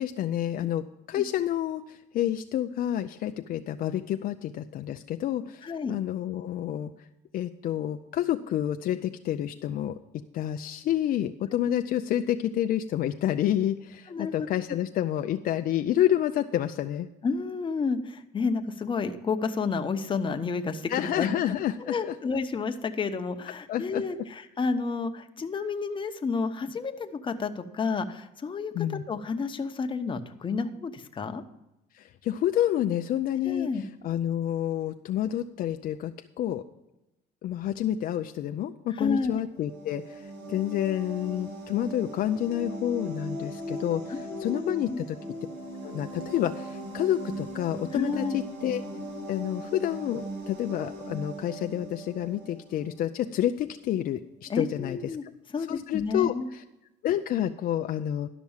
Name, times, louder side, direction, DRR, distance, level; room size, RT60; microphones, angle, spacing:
voice 1, 0.0-6.9 7.3-10.0 10.3-17.1 20.9-22.1 23.7-24.0 28.7-29.0 31.9-33.7 34.0-36.1 36.4-36.6 37.4-45.2 45.8-48.8 49.2-55.1 55.7-56.6 57.0-58.3, left 11 dB, 60° left, 7 dB, 0.5 m, -29 dB
voice 2, 5.6-5.9 14.1-14.3 17.2-21.3 21.8-31.4 33.4-33.8 39.0-39.4 44.1-45.0 47.9-48.4 54.5-55.2 55.5-56.5, left 4 dB, 30° left, 6 dB, 0.9 m, -30 dB
sound 1, 39.5-53.1, right 1 dB, 85° right, 3.2 m, -39 dB
11.5 x 6.1 x 7.2 m, 0.93 s
cardioid pair, 110°, 17 cm